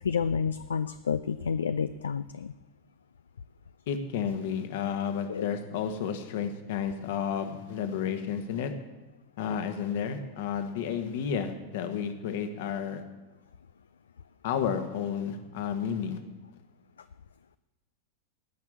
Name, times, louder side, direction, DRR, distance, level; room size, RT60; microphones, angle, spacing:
voice 1, 0.0-2.5 5.3-5.5, left 6 dB, 70° left, 14 dB, 0.3 m, -30 dB
voice 2, 3.9-8.7 9.4-13.0 14.4-16.2, left 7 dB, 55° left, 8 dB, 1.4 m, -31 dB
17.5 x 6.1 x 7.8 m, 1.1 s
figure-of-eight pair, 90°, 0 cm